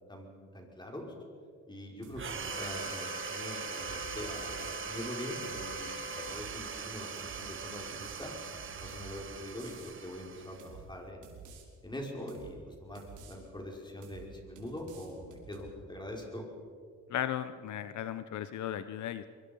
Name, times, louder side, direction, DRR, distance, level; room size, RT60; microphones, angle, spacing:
voice 1, 0.1-1.0 1.7-8.3 8.8-11.3 11.8-16.5, left 1 dB, 15° left, 0 dB, 5.7 m, -43 dB
sound 1, 2.0-2.3 2.7-3.1 3.7-4.8 5.4-5.7 6.1-6.6 7.2-7.4 7.9-9.1 9.6-10.0 10.6-10.9 11.2-11.6 12.3-12.6 12.9-13.4 14.0-14.3 14.6-15.7, right 6 dB, 85° right, 4.0 m, -51 dB
sound 2, 2.2-11.0, right 6 dB, 40° right, 1.6 m, -41 dB
Wind instrument woodwind instrument, 2.5-6.4, left 4 dB, 35° left, 1.7 m, -45 dB
voice 2, 17.1-19.2, left 11 dB, 70° left, 12 dB, 0.9 m, -36 dB
23.5 x 23.5 x 5.5 m, 2.1 s
cardioid pair, 90°, 30 cm